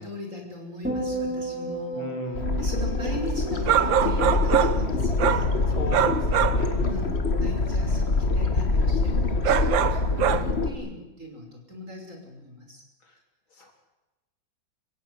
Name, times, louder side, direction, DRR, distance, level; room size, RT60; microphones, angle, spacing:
voice 1, 0.0-5.6 6.9-12.8, equal, 40° right, 2 dB, 5.9 m, -39 dB
sound 1, 0.8-5.2 5.5-6.0, right 1 dB, 5° right, 3.7 m, -34 dB
voice 2, 1.9-2.6 5.7-6.9 13.6-13.7, left 2 dB, 85° left, 3 dB, 4.5 m, -37 dB
sound 2, 2.3-10.7, left 3 dB, 35° left, 2.0 m, -25 dB
sound 3, 3.7-4.9 5.2-5.5 5.9-6.7 9.4-10.4, right 9 dB, 75° right, 1.8 m, -23 dB
26.5 x 16.0 x 9.6 m, 1.0 s
omnidirectional pair, 2.1 m